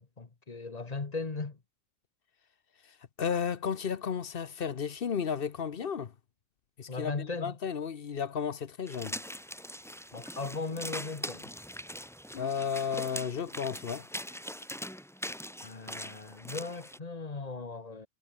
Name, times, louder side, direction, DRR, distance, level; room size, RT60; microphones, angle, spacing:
voice 1, 0.0-1.6 6.9-7.6 10.1-11.5 15.6-18.1, left 3 dB, 30° left, 1.4 m, -38 dB
voice 2, 3.2-6.1 6.8-9.2 12.3-14.1, left 7 dB, 45° left, 1.0 m, -33 dB
sound 1, 8.9-17.0, equal, ahead, 2.2 m, -42 dB
omnidirectional pair, 1.4 m